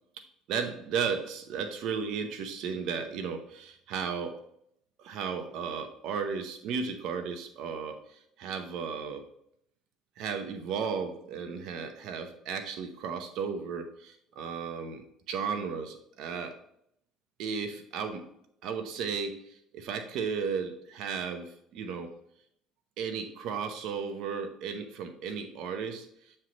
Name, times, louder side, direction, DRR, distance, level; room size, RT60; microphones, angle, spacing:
voice 1, 0.5-4.4 5.0-9.3 10.2-16.6 17.4-18.3 18.6-22.1 23.0-26.3, right 6 dB, 70° right, 6 dB, 0.8 m, -35 dB
7.3 x 3.3 x 4.0 m, 0.70 s
supercardioid pair, 80°, 0 cm